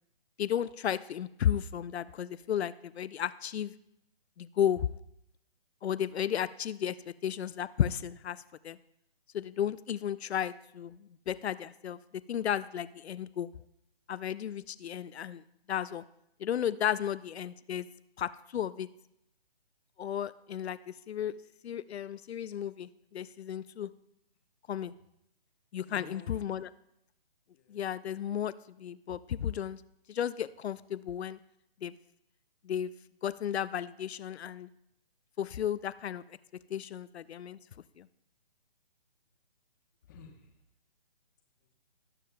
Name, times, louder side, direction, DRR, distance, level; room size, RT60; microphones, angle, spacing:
voice 1, 0.4-3.7 4.4-4.9 5.8-8.4 8.6-8.8 9.3-11.0 11.3-12.0 12.3-13.5 14.1-15.4 15.7-16.0 16.4-17.9 18.2-18.9 20.0-21.3 21.6-23.9 24.7-24.9 25.7-26.7 27.7-28.5 28.8-29.8 30.1-31.4 31.8-31.9 32.6-32.9 33.2-34.7 35.4-36.2 36.7-37.6 38.0-38.1, left 9 dB, 80° left, 16 dB, 0.5 m, -33 dB
voice 2, 25.8-26.6 27.5-27.8 40.1-40.6 41.6-41.7, left 3 dB, 20° left, 3 dB, 0.9 m, -53 dB
19.0 x 7.5 x 2.2 m, 0.80 s
hypercardioid pair, 160°, 32 cm